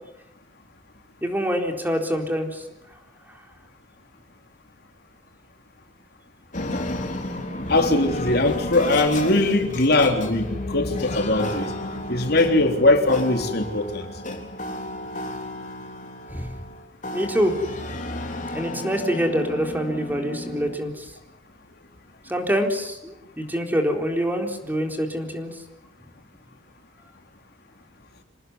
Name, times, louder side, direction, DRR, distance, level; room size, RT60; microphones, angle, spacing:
voice 1, 1.2-2.6 16.3-16.5 17.1-17.6 18.5-21.1 22.3-25.5, equal, 10° right, 3 dB, 3.9 m, -25 dB
sound 1, 6.5-20.8, left 1 dB, 45° left, 3.8 m, -32 dB
voice 2, 7.7-11.7 12.1-14.1, left 2 dB, 60° left, 4 dB, 3.6 m, -20 dB
27.5 x 19.0 x 9.8 m, 0.82 s
head